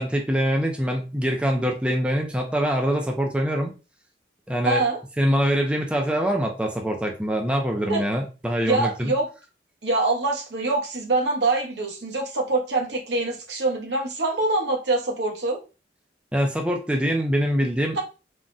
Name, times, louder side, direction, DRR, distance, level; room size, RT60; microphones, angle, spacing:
voice 1, 0.0-3.7 4.5-4.8 5.2-9.1 16.3-18.0, equal, 5° right, 2 dB, 0.4 m, -24 dB
voice 2, 4.6-5.0 7.9-8.0 8.6-9.3 9.8-15.6 17.9-18.0, right 2 dB, 75° right, 1 dB, 0.9 m, -24 dB
3.5 x 2.1 x 2.5 m, 0.31 s
head